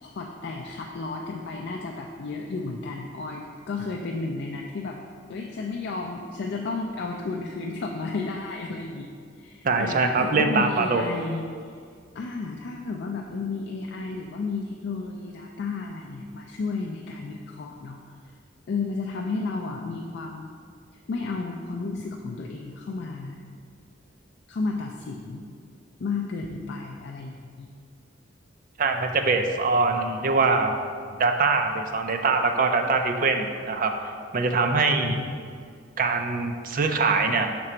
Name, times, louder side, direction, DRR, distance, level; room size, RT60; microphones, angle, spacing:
voice 1, 0.0-5.0 5.3-11.7 12.1-18.0 18.7-20.5 21.1-23.4 24.5-25.4 26.0-27.7 34.9-35.4, left 3 dB, 60° left, 1 dB, 0.4 m, -32 dB
voice 2, 9.6-11.0 28.8-30.7 31.2-33.9 34.3-35.2 36.0-37.6, right 4 dB, 45° right, 5 dB, 0.5 m, -23 dB
6.0 x 3.8 x 4.4 m, 2.1 s
head